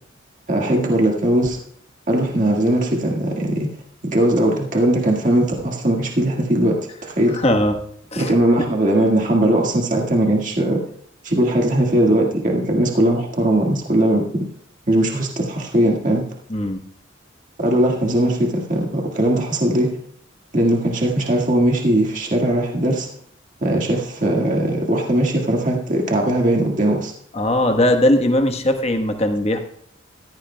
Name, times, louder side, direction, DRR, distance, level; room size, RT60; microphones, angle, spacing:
voice 1, 0.5-1.6 2.1-3.7 4.0-7.4 8.2-10.8 11.2-14.4 14.9-16.3 17.6-19.9 20.5-23.1 23.6-27.1, right 1 dB, 40° right, 0 dB, 1.8 m, -19 dB
voice 2, 7.3-7.8 8.1-8.3 16.5-16.8 27.3-29.6, left 1 dB, 30° left, 5 dB, 1.2 m, -19 dB
16.5 x 14.0 x 2.3 m, 0.65 s
head